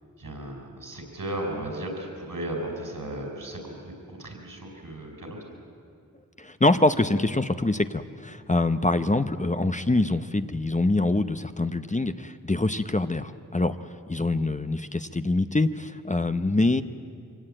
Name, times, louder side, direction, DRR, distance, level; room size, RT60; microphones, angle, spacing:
voice 1, 0.2-3.9 4.2-5.4, right 1 dB, 75° right, 2 dB, 5.2 m, -35 dB
voice 2, 6.4-13.8 14.1-16.8, left 2 dB, 20° left, 10 dB, 0.7 m, -24 dB
23.5 x 17.5 x 8.9 m, 2.4 s
wide cardioid pair, 45°, 34 cm